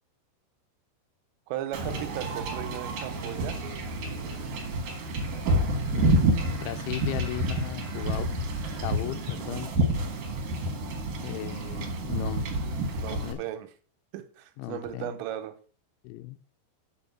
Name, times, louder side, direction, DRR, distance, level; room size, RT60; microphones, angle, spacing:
voice 1, 1.5-3.6 12.9-13.7 14.1-15.6, right 12 dB, 85° right, 8 dB, 3.6 m, -36 dB
Wind / Ocean / Boat Water vehicle, 1.7-13.3, right 1 dB, 60° right, 2.3 m, -29 dB
voice 2, 5.9-8.3 8.8-9.8 11.2-12.6 13.1-13.4 14.6-15.2 16.0-16.4, left 16 dB, 85° left, 7 dB, 2.9 m, -36 dB
6.9 x 6.5 x 7.4 m, 0.43 s
omnidirectional pair, 5.8 m